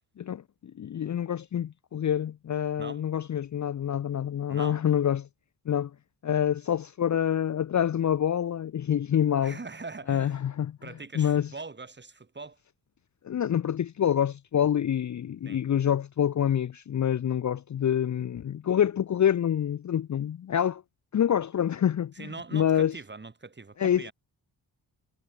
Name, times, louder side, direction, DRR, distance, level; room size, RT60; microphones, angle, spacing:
voice 1, 0.8-5.3 5.7-5.9 6.2-9.6 10.1-10.8 11.1-11.5 13.2-20.8 21.1-22.1 22.5-22.9 23.8-24.1, left 9 dB, 40° left, 0.6 m, -26 dB
voice 2, 4.5-4.8 9.4-10.4 10.8-12.6 15.4-15.6 22.1-24.1, right 3 dB, 25° right, 3.0 m, -42 dB
cardioid pair, 105°, 44 cm